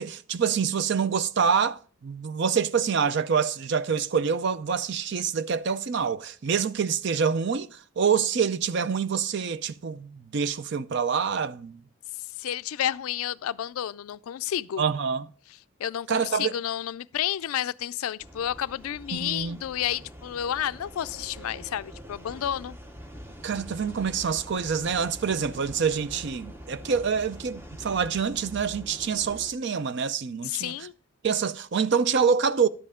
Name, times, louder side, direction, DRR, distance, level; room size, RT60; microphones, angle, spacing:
voice 1, 0.0-11.8 14.8-15.3 16.1-16.5 19.1-19.6 23.4-30.7 31.2-32.7, right 6 dB, 50° right, 0.4 m, -26 dB
voice 2, 12.4-14.9 15.8-22.8 30.4-30.9, left 11 dB, 75° left, 0.3 m, -31 dB
sound 1, 18.2-29.5, equal, 10° right, 0.7 m, -44 dB
11.0 x 7.7 x 3.6 m
head